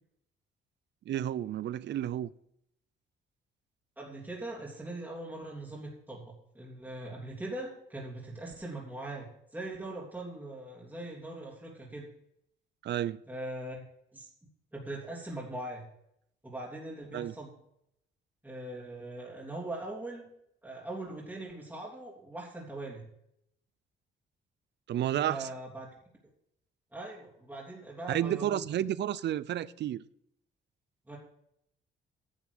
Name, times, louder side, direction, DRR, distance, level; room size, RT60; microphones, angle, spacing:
voice 1, 1.1-2.3 12.8-13.2 17.1-17.3 24.9-25.5 28.1-30.0, right 11 dB, 60° right, 0.5 m, -31 dB
voice 2, 4.0-12.1 13.3-13.8 14.1-14.3 14.7-15.9 16.4-17.5 18.4-20.3 20.6-23.1 25.3-25.9 26.9-28.6 31.1-31.2, right 2 dB, 10° right, 3.0 m, -41 dB
11.0 x 6.9 x 6.8 m
cardioid pair, 90°, 20 cm